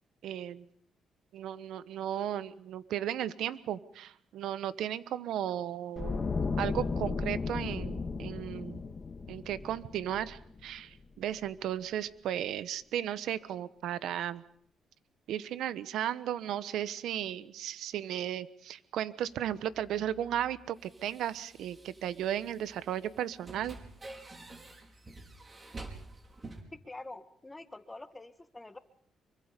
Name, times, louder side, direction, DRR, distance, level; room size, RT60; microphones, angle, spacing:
voice 1, 0.2-0.7 1.3-6.2 6.6-8.8 9.3-14.4 15.3-23.8, right 11 dB, 80° right, 15 dB, 1.1 m, -35 dB
sound 1, 6.0-11.0 11.3-11.6, left 4 dB, 35° left, 1.9 m, -35 dB
sound 2, 19.2-26.6, right 2 dB, 30° right, 5.1 m, -49 dB
voice 2, 26.7-28.8, left 2 dB, 15° left, 10 dB, 1.9 m, -46 dB
25.5 x 24.0 x 5.3 m, 0.64 s
cardioid pair, 90°, 0 cm